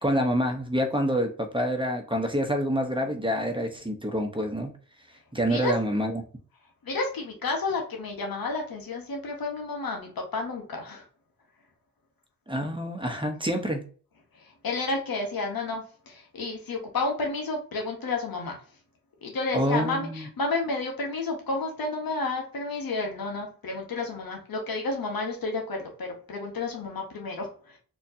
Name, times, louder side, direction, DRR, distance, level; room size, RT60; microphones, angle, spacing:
voice 1, 0.0-4.7 5.3-6.2 12.5-13.8 19.5-20.3, equal, 15° right, 4 dB, 1.1 m, -27 dB
voice 2, 5.4-5.7 6.8-11.0 14.4-18.6 19.2-27.8, left 3 dB, 75° left, 2 dB, 1.2 m, -31 dB
4.2 x 3.0 x 2.8 m, 0.43 s
cardioid pair, 40°, 35 cm